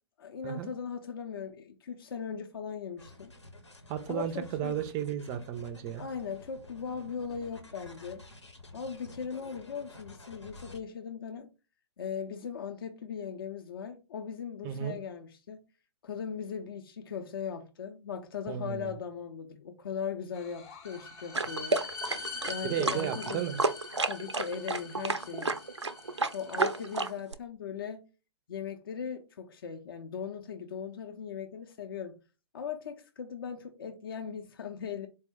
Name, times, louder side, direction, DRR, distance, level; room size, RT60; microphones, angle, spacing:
voice 1, 0.2-3.3 4.1-4.8 6.0-8.2 8.7-11.5 12.0-15.6 16.0-21.8 22.5-23.4 24.1-25.6 26.3-28.0 28.5-32.2 32.5-35.1, left 7 dB, 55° left, 0.5 m, -39 dB
sound 1, 3.0-10.8, left 1 dB, 90° left, 0.9 m, -51 dB
voice 2, 3.9-6.0 14.6-15.0 18.5-18.9 22.6-23.6, right 10 dB, 20° right, 0.3 m, -34 dB
sound 2, 20.3-27.1, left 3 dB, 25° left, 0.9 m, -44 dB
sound 3, 21.3-27.3, right 3 dB, 90° right, 0.4 m, -31 dB
4.2 x 2.1 x 3.5 m
figure-of-eight pair, 125°, 14 cm